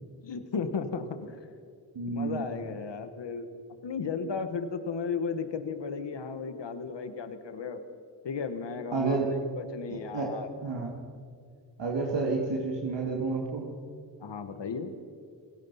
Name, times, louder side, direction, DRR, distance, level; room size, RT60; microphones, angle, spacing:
voice 1, 0.2-1.4 2.1-3.5 3.8-7.8 8.2-9.2 9.6-10.5 14.2-15.0, left 5 dB, 85° left, 9 dB, 1.5 m, -34 dB
voice 2, 1.9-2.5 8.9-9.4 9.9-10.3 10.6-10.9 11.8-13.7, right 3 dB, 90° right, 0 dB, 2.5 m, -30 dB
28.5 x 18.0 x 5.6 m, 2.2 s
cardioid pair, 55°, 42 cm